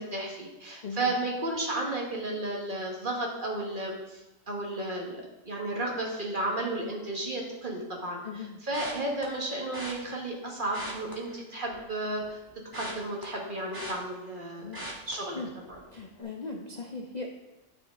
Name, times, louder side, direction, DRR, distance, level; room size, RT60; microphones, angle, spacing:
voice 1, 0.0-8.2 8.7-12.4 12.7-14.7 15.1-15.4, right 2 dB, 40° right, -1 dB, 1.5 m, -33 dB
voice 2, 0.8-1.2 8.2-8.6 14.6-14.8 15.3-15.5 15.9-17.3, left 3 dB, 45° left, 1 dB, 0.6 m, -38 dB
sound 1, 8.7-9.2 9.7-9.9 10.6-11.9 12.2-14.4 14.7-15.1 15.6-15.9 16.2-16.3, right 1 dB, 15° right, 1.4 m, -41 dB
9.2 x 6.1 x 3.6 m, 1.0 s
omnidirectional pair, 1.4 m